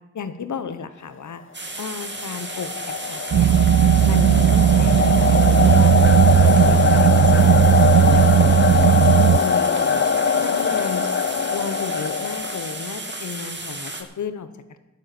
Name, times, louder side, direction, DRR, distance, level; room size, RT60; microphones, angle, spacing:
voice 1, 0.1-1.4 1.8-3.6 4.0-5.9 6.4-7.5 8.0-10.0 10.4-11.1 11.5-14.8, left 6 dB, 85° left, 11 dB, 1.1 m, -33 dB
sound 1, 1.5-14.0, right 2 dB, 40° right, 2.2 m, -34 dB
sound 2, 2.1-13.0, left 5 dB, 45° left, 0.6 m, -22 dB
sound 3, 3.3-9.4, right 9 dB, 60° right, 0.5 m, -16 dB
11.5 x 7.6 x 9.4 m, 0.98 s
cardioid pair, 40°, 29 cm